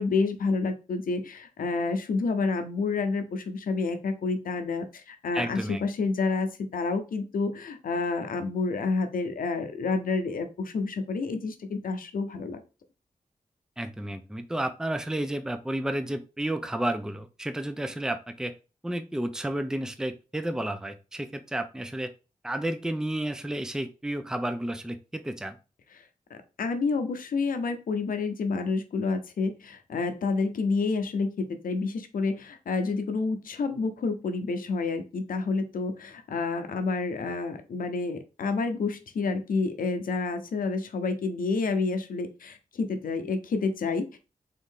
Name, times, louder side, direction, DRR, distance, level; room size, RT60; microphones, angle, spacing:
voice 1, 0.0-12.6 25.9-26.0 26.3-44.2, left 4 dB, 85° left, 8 dB, 0.6 m, -29 dB
voice 2, 5.3-5.8 13.8-18.5 18.8-22.1 22.4-25.6, right 1 dB, 5° right, 9 dB, 0.5 m, -31 dB
3.7 x 2.7 x 3.6 m, 0.31 s
cardioid pair, 60°, 14 cm